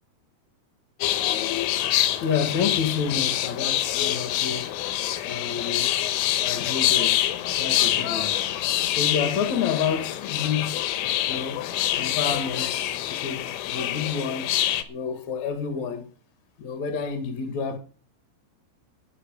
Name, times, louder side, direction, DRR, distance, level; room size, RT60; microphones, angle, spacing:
sound 1, 1.0-14.8, left 13 dB, 75° left, 3.2 m, -26 dB
voice 1, 2.2-4.7 5.2-5.9 6.4-7.2 7.6-8.4 8.9-10.9 11.3-11.6 12.0-14.5 14.9-16.1 16.6-17.8, left 6 dB, 55° left, 2.3 m, -29 dB
15.0 x 5.6 x 9.3 m
omnidirectional pair, 5.7 m